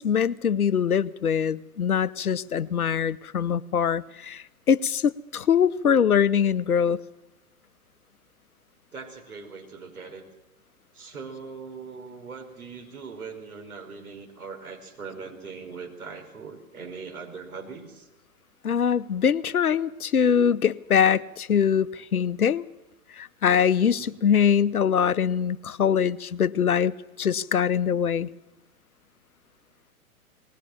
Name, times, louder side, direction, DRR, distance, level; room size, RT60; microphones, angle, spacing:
voice 1, 0.0-7.0 18.6-22.6 23.2-28.3, left 7 dB, 80° left, 0.9 m, -23 dB
voice 2, 8.9-10.3 10.9-18.1 24.0-24.2, right 5 dB, 80° right, 5.4 m, -40 dB
20.0 x 19.5 x 7.4 m
figure-of-eight pair, 115°, 43 cm